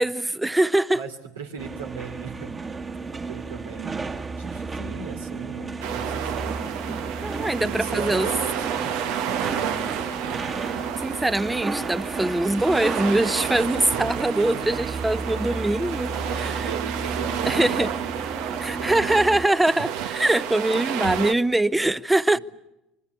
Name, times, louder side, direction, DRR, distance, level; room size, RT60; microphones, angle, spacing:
voice 1, 0.0-1.0 7.2-8.3 11.0-16.7 17.5-17.9 18.6-22.4, right 1 dB, 10° right, 0.9 m, -23 dB
voice 2, 0.9-2.5 3.1-6.8 7.4-10.5 16.2-18.7 22.3-22.4, right 5 dB, 90° right, 3.2 m, -38 dB
sound 1, 1.6-19.5, right 4 dB, 30° right, 1.9 m, -33 dB
sound 2, 5.8-21.3, right 9 dB, 70° right, 1.3 m, -31 dB
25.5 x 22.5 x 8.3 m
hypercardioid pair, 75°, 0 cm